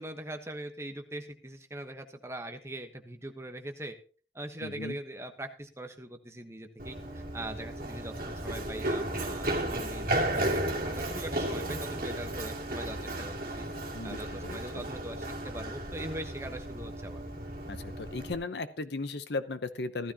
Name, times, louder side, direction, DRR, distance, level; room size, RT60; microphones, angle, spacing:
voice 1, 0.0-3.9 4.3-13.6 14.0-17.2, right 1 dB, 15° right, 5 dB, 1.1 m, -42 dB
voice 2, 4.6-5.0 13.9-14.8 17.7-20.1, left 3 dB, 65° left, 12 dB, 0.8 m, -36 dB
Run, 6.8-18.3, right 1 dB, 50° right, 2.4 m, -34 dB
15.0 x 12.5 x 2.9 m, 0.39 s
head